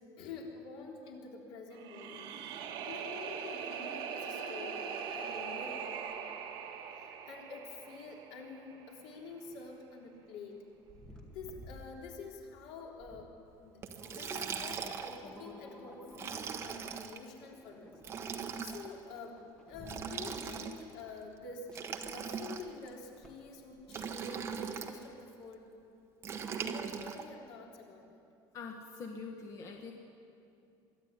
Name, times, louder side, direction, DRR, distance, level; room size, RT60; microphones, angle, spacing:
voice 1, 0.2-2.3 2.8-5.9 6.9-10.6 11.3-13.3 13.6-18.0 18.6-19.4 19.7-21.7 22.1-25.7 26.7-28.2, left 4 dB, 70° left, 0 dB, 3.8 m, -48 dB
sound 1, 1.7-8.8, right 6 dB, 50° right, 2.1 m, -41 dB
sound 2, 5.1-23.9, left 1 dB, 10° left, 2.2 m, -56 dB
Liquid, 13.8-15.3 16.1-17.2 18.0-18.9 19.8-20.9 21.7-22.9 23.9-25.0 26.2-27.2, right 6 dB, 25° right, 1.1 m, -40 dB
voice 2, 28.5-29.9, left 4 dB, 35° left, 3 dB, 1.3 m, -44 dB
23.0 x 13.0 x 9.7 m, 2.7 s
cardioid pair, 175°, 10 cm